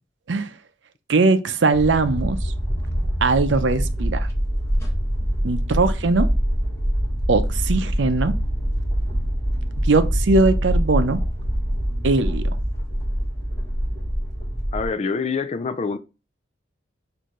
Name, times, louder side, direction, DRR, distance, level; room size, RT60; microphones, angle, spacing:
voice 1, 1.1-2.5 3.2-4.3 5.4-6.3 7.3-8.3 9.8-11.2 12.0-12.5, right 3 dB, 80° right, 0.6 m, -20 dB
sound 1, 1.7-14.9, equal, 15° left, 1.5 m, -24 dB
voice 2, 14.7-16.0, left 4 dB, 35° left, 0.4 m, -25 dB
6.4 x 2.7 x 3.0 m
head